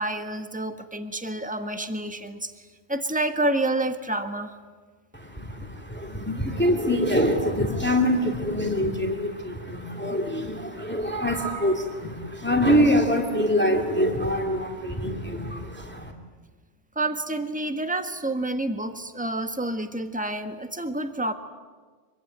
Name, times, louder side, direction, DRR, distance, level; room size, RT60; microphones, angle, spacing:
voice 1, 0.0-4.5 16.9-21.3, right 2 dB, 5° right, 7 dB, 1.5 m, -29 dB
voice 2, 5.1-16.1, equal, 10° left, 3 dB, 2.5 m, -25 dB
25.5 x 23.5 x 9.6 m, 1.4 s
omnidirectional pair, 1.2 m